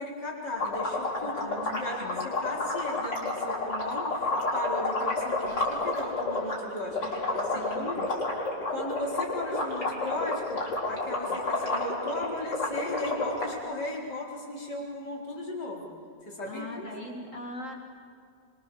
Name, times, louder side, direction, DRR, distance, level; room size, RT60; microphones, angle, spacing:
voice 1, 0.0-8.0 8.7-15.9 16.3-16.9, left 1 dB, 70° left, -2 dB, 4.9 m, -36 dB
sound 1, 0.6-6.5 6.9-13.5, left 2 dB, 90° left, 5.4 m, -30 dB
voice 2, 1.2-2.3 6.8-7.3 7.5-8.1 11.3-11.4 16.5-17.7, left 2 dB, 45° left, 1 dB, 2.5 m, -41 dB
25.0 x 24.5 x 7.1 m, 2.3 s
omnidirectional pair, 1.9 m